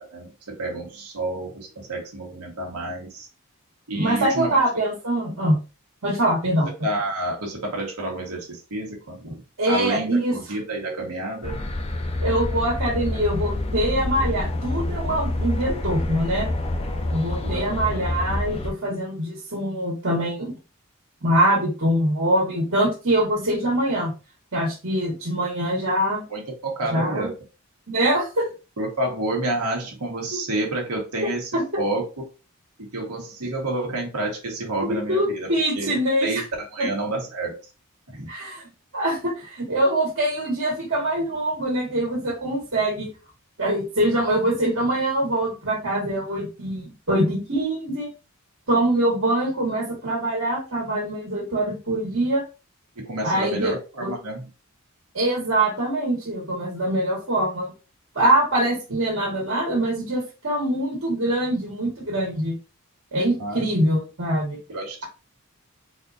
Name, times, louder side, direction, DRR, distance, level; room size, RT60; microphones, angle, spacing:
voice 1, 0.0-3.3 3.9-4.8 6.8-11.6 17.4-18.0 26.3-27.4 28.8-31.5 31.8-32.1 32.8-37.6 38.1-38.3 52.9-54.5 63.4-63.7 64.7-65.1, right 2 dB, 90° right, -1 dB, 1.4 m, -29 dB
voice 2, 3.9-5.6 6.0-6.7 9.6-10.3 12.2-16.5 17.1-20.5 21.2-24.1 24.5-26.2 26.9-27.3 27.9-28.5 31.5-31.6 34.9-36.3 36.8-36.9 38.3-38.6 38.9-43.1 43.6-48.1 48.7-52.4 53.2-53.7 54.0-54.1 55.1-57.7 58.1-62.6 63.1-64.6, right 1 dB, 60° right, -2 dB, 1.5 m, -23 dB
sound 1, 11.4-18.7, left 1 dB, 25° left, 0.5 m, -27 dB
4.1 x 2.6 x 2.5 m, 0.30 s
head